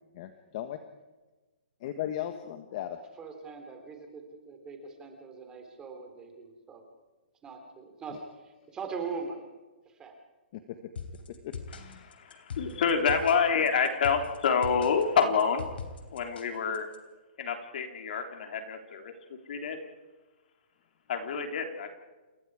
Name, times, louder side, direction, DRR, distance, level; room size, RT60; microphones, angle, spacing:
voice 1, 0.1-0.8 1.8-3.0 10.5-10.6 11.4-12.1, left 11 dB, 40° left, 8 dB, 1.4 m, -37 dB
voice 2, 3.2-6.8 7.4-9.4 9.8-10.2, right 5 dB, 15° right, 3 dB, 3.5 m, -41 dB
sound 1, 11.0-17.0, left 5 dB, 70° left, 3.5 m, -41 dB
voice 3, 12.0-15.7 16.1-16.9 17.4-19.1 19.5-19.8 21.1-21.9, left 6 dB, 55° left, 5 dB, 3.5 m, -27 dB
28.5 x 22.5 x 4.9 m, 1.2 s
hypercardioid pair, 155°, 6 cm